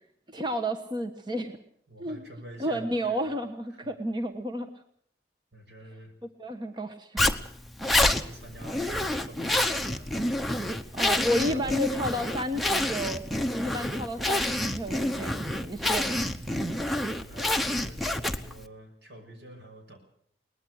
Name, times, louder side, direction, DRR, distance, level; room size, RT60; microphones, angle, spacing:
voice 1, 0.3-1.5 2.0-2.2 2.6-4.7 6.4-7.2 10.9-13.2 13.5-16.2, equal, 25° right, 6 dB, 1.2 m, -31 dB
voice 2, 1.9-3.4 3.7-3.9 5.5-6.1 7.8-10.1 11.3-12.1 17.2-20.0, right 1 dB, 80° right, 5 dB, 6.1 m, -47 dB
Zipper (clothing), 7.2-18.6, left 1 dB, ahead, 0.9 m, -28 dB
22.0 x 19.5 x 6.4 m, 0.65 s
head